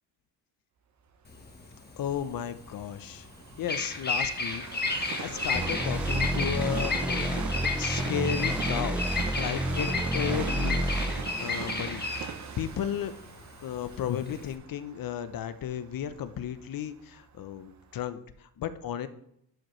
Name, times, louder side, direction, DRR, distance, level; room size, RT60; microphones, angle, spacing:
Bird vocalization bird call bird song, 1.3-14.5, left 3 dB, 25° left, 1.2 m, -33 dB
Train, 1.3-17.2 17.8-17.9, right 7 dB, 45° right, 0.8 m, -41 dB
voice 1, 2.0-3.3 3.6-10.9 11.4-12.3 12.6-13.1 13.6-19.1, left 9 dB, 55° left, 12 dB, 0.7 m, -34 dB
sound 1, 5.6-12.0, right 1 dB, 5° right, 0.4 m, -30 dB
12.0 x 4.9 x 3.1 m, 0.73 s
cardioid pair, 100°, 40 cm